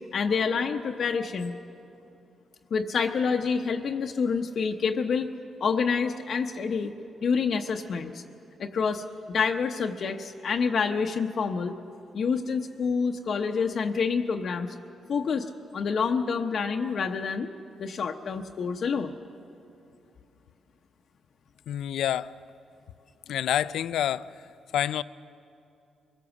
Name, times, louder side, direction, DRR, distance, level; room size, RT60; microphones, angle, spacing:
voice 1, 0.1-1.5 2.7-5.3 5.6-6.9 7.2-8.2 8.6-11.7 12.1-14.7 15.1-17.5 17.8-19.2, left 5 dB, 55° left, 3 dB, 0.8 m, -27 dB
voice 2, 21.7-22.3 23.3-24.3 24.7-25.0, left 11 dB, 85° left, 17 dB, 0.4 m, -27 dB
23.0 x 16.0 x 7.1 m, 2.6 s
cardioid pair, 115°, 0 cm